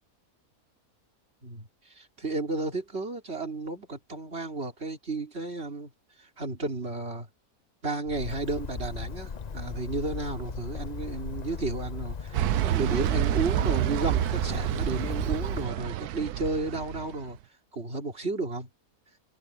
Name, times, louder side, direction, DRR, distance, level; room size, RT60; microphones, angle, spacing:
voice 1, 1.4-5.9 6.2-7.3 7.8-17.4 17.7-18.7, right 3 dB, 45° right, 3.6 m, -33 dB
Bird, 8.1-15.7, left 6 dB, 35° left, 0.7 m, -37 dB
sound 1, 12.3-17.1, right 13 dB, 85° right, 1.2 m, -28 dB
omnidirectional pair, 1.6 m